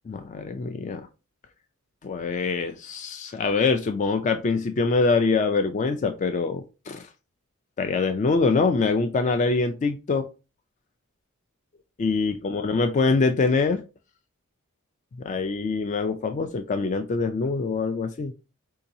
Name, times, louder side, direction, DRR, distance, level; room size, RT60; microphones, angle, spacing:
voice 1, 0.1-1.1 2.0-7.1 7.8-10.3 12.0-13.8 15.2-18.3, left 4 dB, 35° left, 7 dB, 0.3 m, -24 dB
4.6 x 2.8 x 2.6 m, 0.30 s
head